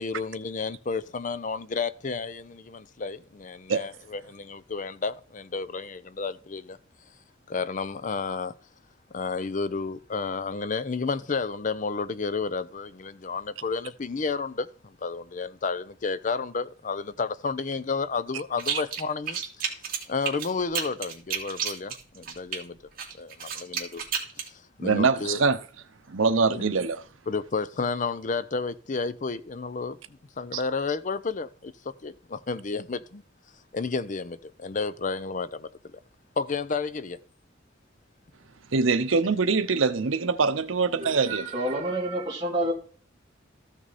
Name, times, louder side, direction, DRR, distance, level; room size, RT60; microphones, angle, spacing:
voice 1, 0.0-6.8 7.5-8.5 9.1-19.8 20.1-22.8 23.2-24.0 24.5-25.4 26.5-26.7 27.3-33.2 33.7-35.7 36.4-37.2, left 4 dB, 40° left, 0.6 m, -31 dB
sound 1, 18.6-19.0 19.3-22.6 23.0-24.5, right 7 dB, 45° right, 2.3 m, -31 dB
voice 2, 24.8-25.6 26.1-27.0 30.5-30.6 38.7-41.4, right 4 dB, 85° right, 0.8 m, -23 dB
voice 3, 41.0-42.7, right 1 dB, 20° right, 2.7 m, -29 dB
14.0 x 6.2 x 4.1 m
head